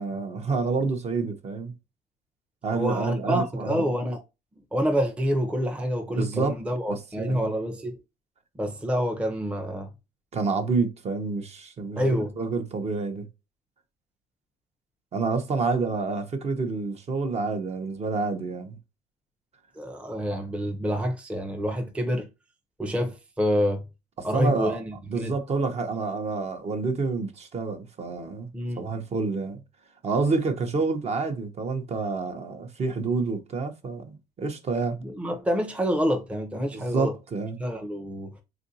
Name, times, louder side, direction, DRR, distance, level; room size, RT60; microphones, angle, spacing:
voice 1, 0.0-1.7 2.6-3.9 6.1-6.6 6.9-7.5 10.3-13.2 15.1-18.8 24.2-24.8 25.1-28.5 28.8-29.6 30.0-35.0 36.7-37.6, right 4 dB, 40° right, 0.8 m, -28 dB
voice 2, 2.7-4.2 4.7-8.0 8.6-9.9 12.0-12.3 19.8-22.3 22.8-23.9 24.2-25.3 28.5-28.9 35.0-37.1 37.6-38.3, equal, 5° right, 0.6 m, -27 dB
3.7 x 2.5 x 2.7 m
cardioid pair, 110°, 17 cm